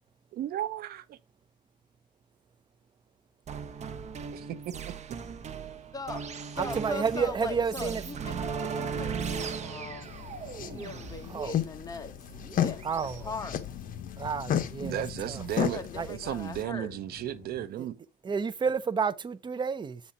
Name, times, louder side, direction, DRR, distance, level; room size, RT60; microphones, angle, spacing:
voice 1, 0.3-1.2 4.3-4.7 14.8-15.8 16.1-18.0, right 12 dB, 65° right, 0.8 m, -34 dB
sound 1, 3.5-13.2, right 6 dB, 40° right, 1.0 m, -37 dB
voice 2, 5.9-10.1 10.6-12.1 12.6-12.8 13.2-13.7 15.6-17.0, left 3 dB, 20° left, 1.6 m, -40 dB
voice 3, 6.6-8.0 11.3-11.5 12.8-13.3 14.2-15.4 15.9-16.1 17.8-17.9 18.2-20.0, right 6 dB, 25° right, 0.6 m, -30 dB
sound 2, 9.8-17.7, left 9 dB, 70° left, 1.4 m, -46 dB
sound 3, 10.0-16.6, left 10 dB, 55° left, 1.0 m, -33 dB
7.1 x 4.2 x 4.9 m
cardioid pair, 110°, 17 cm